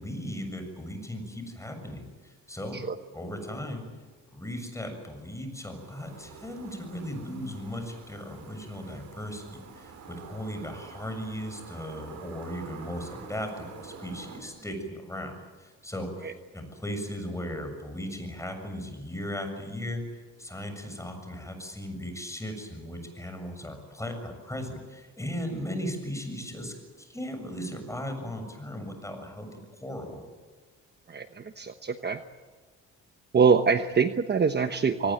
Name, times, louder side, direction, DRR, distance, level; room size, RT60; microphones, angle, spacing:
voice 1, 0.0-2.8 3.1-3.8 4.3-20.0 20.4-30.2, equal, 10° left, 6 dB, 7.1 m, -37 dB
sound 1, 5.6-14.4, right 5 dB, 70° right, 6.4 m, -47 dB
voice 2, 31.1-32.2 33.3-35.1, right 5 dB, 35° right, 8 dB, 1.1 m, -24 dB
24.5 x 19.5 x 9.1 m, 1.3 s
cardioid pair, 90°, 30 cm